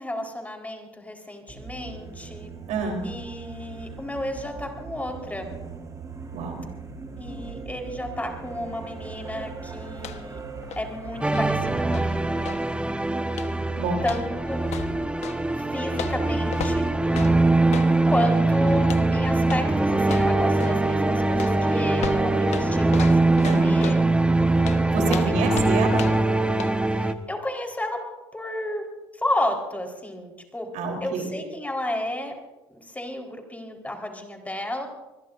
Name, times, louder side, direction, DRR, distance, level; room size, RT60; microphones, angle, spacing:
voice 1, 0.0-2.5 3.0-5.5 7.2-10.4 10.8-12.4 14.0-14.6 15.5-16.9 18.1-24.1 25.0-25.5 26.9-28.0 28.3-28.9 29.1-30.7 31.0-32.3 32.7-34.9, left 1 dB, 10° left, 2 dB, 4.2 m, -32 dB
sound 1, 1.5-11.5, right 4 dB, 25° right, 4.1 m, -39 dB
voice 2, 2.7-3.1 6.3-6.6 13.8-14.0 23.4-23.8 24.9-26.2 30.7-31.3, right 4 dB, 65° right, 2 dB, 3.7 m, -28 dB
sound 2, 9.9-10.4 10.6-12.7 13.3-13.7 14.0-15.4 15.9-18.0 18.8-19.1 19.4-19.7 20.0-20.9 21.4-24.1 24.6-26.3 26.6-26.8, left 9 dB, 60° left, 1.2 m, -36 dB
sound 3, 11.2-27.1, right 2 dB, 10° right, 1.2 m, -22 dB
25.5 x 21.5 x 2.6 m, 1.1 s
hypercardioid pair, 70°, 13 cm